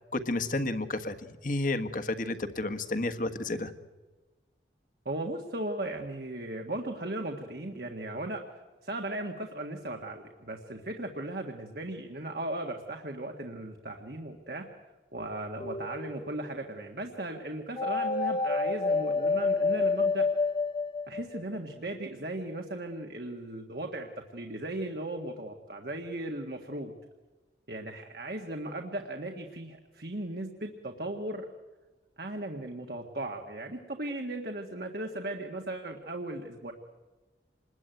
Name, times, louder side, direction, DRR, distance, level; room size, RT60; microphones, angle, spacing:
voice 1, 0.1-3.7, left 2 dB, 50° left, 9 dB, 1.6 m, -31 dB
voice 2, 5.1-8.4 8.8-14.7 15.1-20.3 21.1-26.9 27.7-31.5 32.2-36.7, right 1 dB, 60° right, 3 dB, 1.8 m, -37 dB
sound 1, 15.6-16.3 17.8-21.6, left 3 dB, 30° left, 0.9 m, -28 dB
27.5 x 21.0 x 9.2 m, 1.2 s
head